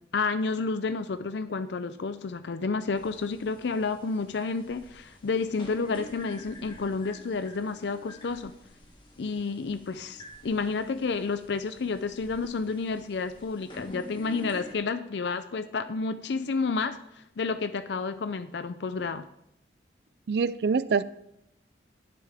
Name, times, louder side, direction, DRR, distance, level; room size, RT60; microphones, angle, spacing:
voice 1, 0.1-8.5 9.2-19.3, left 4 dB, 75° left, 11 dB, 0.5 m, -30 dB
sound 1, 2.9-14.7, left 1 dB, 25° left, 1.4 m, -48 dB
voice 2, 20.3-21.0, right 5 dB, 65° right, 16 dB, 0.4 m, -25 dB
11.0 x 9.7 x 3.5 m, 0.77 s
head